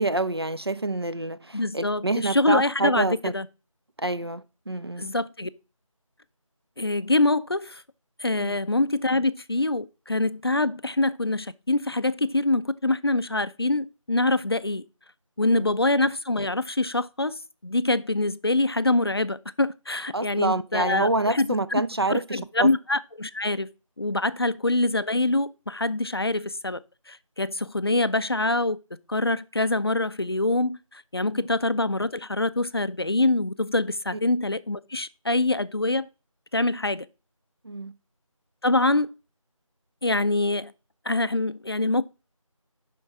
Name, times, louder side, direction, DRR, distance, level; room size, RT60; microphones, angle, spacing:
voice 1, 0.0-3.3 4.0-5.1 8.4-8.6 15.5-15.8 20.1-22.7 31.4-31.5 37.6-37.9, right 2 dB, 45° right, 0.4 m, -27 dB
voice 2, 1.5-3.5 5.0-5.5 6.8-7.8 8.2-14.8 15.4-21.8 22.1-23.7 24.0-26.8 27.1-28.8 29.1-36.1 36.5-37.1 38.6-39.1 40.0-40.7 41.1-42.0, left 2 dB, 45° left, 0.4 m, -25 dB
11.0 x 4.5 x 3.4 m
figure-of-eight pair, 170°, 18 cm